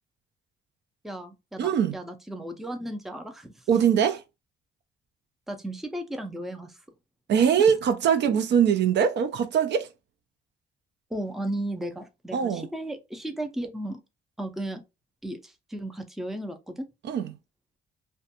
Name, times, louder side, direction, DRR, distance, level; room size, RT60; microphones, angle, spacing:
voice 1, 1.0-3.6 5.5-6.8 11.1-14.0 14.4-14.8 15.2-16.8, right 1 dB, ahead, 0.4 m, -35 dB
voice 2, 1.6-2.0 3.7-4.2 7.3-9.9 12.3-12.7 17.0-17.3, right 8 dB, 60° right, 0.4 m, -22 dB
2.4 x 2.2 x 2.7 m
cardioid pair, 90°, 20 cm